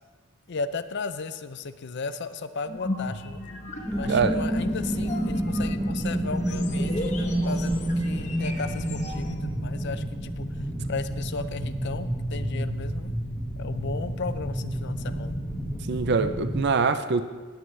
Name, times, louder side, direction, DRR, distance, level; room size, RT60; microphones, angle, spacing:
voice 1, 0.5-3.4 3.9-10.6 10.9-13.2 13.6-15.4, left 4 dB, 55° left, 12 dB, 0.5 m, -35 dB
sound 1, 2.6-9.4, left 1 dB, 35° left, 1.0 m, -37 dB
sound 2, 3.9-16.7, right 1 dB, ahead, 1.0 m, -29 dB
voice 2, 4.1-4.4 15.9-17.2, right 4 dB, 50° right, 10 dB, 0.5 m, -23 dB
18.5 x 7.8 x 3.3 m, 1.4 s
head